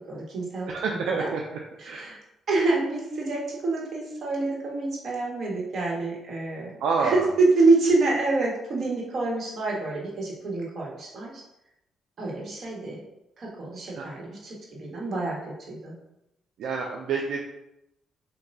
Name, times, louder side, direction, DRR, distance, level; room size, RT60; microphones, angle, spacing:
voice 1, 0.1-0.7 1.2-1.3 1.8-2.2 2.5-6.7 7.0-11.4 12.2-13.0 13.4-15.4 15.7-16.0, right 3 dB, 55° right, -3 dB, 1.7 m, -26 dB
voice 2, 0.7-2.2 6.8-7.3 14.0-14.1 16.6-17.4, right 5 dB, 80° right, 0 dB, 0.5 m, -28 dB
6.8 x 2.8 x 2.7 m, 0.86 s
cardioid pair, 85°, 0 cm